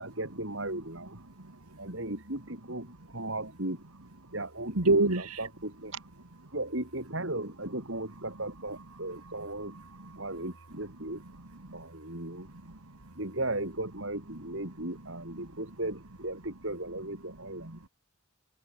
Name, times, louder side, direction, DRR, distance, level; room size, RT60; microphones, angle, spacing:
voice 1, 0.0-1.2 1.8-3.8 4.3-6.0 6.5-9.8 10.2-11.2 11.7-12.5 13.2-17.8, right 2 dB, 60° right, 4.1 m, -36 dB
voice 2, 1.4-1.8 4.8-5.4 9.9-10.2 11.6-11.8 12.7-13.1, right 2 dB, 90° right, 2.2 m, -28 dB
head